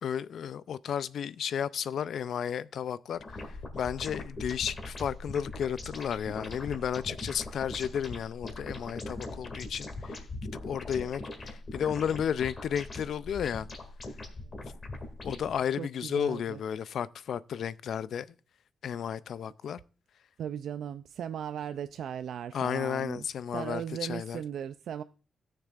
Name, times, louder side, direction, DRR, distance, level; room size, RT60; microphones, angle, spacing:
voice 1, 0.0-13.7 15.2-18.3 18.8-19.8 22.5-24.4, left 8 dB, 80° left, 0.4 m, -33 dB
sound 1, 3.2-15.6, left 2 dB, 45° left, 2.1 m, -41 dB
voice 2, 15.8-16.6 20.4-23.3 23.5-25.0, right 9 dB, 85° right, 0.3 m, -37 dB
17.0 x 6.6 x 2.4 m
cardioid pair, 80°, 0 cm